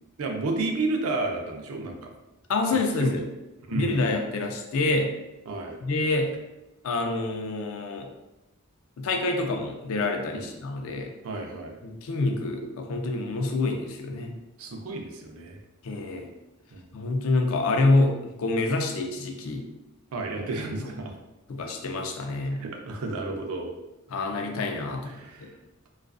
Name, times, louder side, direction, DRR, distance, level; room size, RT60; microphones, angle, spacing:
voice 1, 0.2-2.1 3.0-3.1 3.7-4.1 5.5-5.8 10.3-10.5 11.2-11.8 14.6-15.6 16.7-16.8 20.1-21.1 22.5-23.7 25.0-25.5, right 3 dB, 80° right, 2 dB, 0.4 m, -31 dB
voice 2, 2.5-3.3 3.7-5.1 5.8-6.4 6.8-8.1 9.0-11.1 11.8-14.4 15.8-16.3 16.9-19.7 20.8-20.9 21.5-22.7 24.1-25.5, left 2 dB, 70° left, 3 dB, 0.4 m, -27 dB
2.4 x 2.3 x 2.3 m, 0.98 s
head